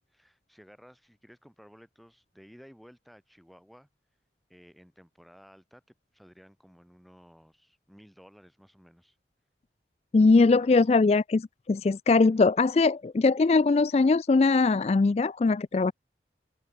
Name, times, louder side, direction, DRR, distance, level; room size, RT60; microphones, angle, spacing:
voice 1, 0.0-3.9 4.5-5.8 6.1-9.2 10.4-10.8, equal, ahead, 7.0 m, -55 dB
voice 2, 10.1-15.9, left 3 dB, 35° left, 0.3 m, -21 dB
head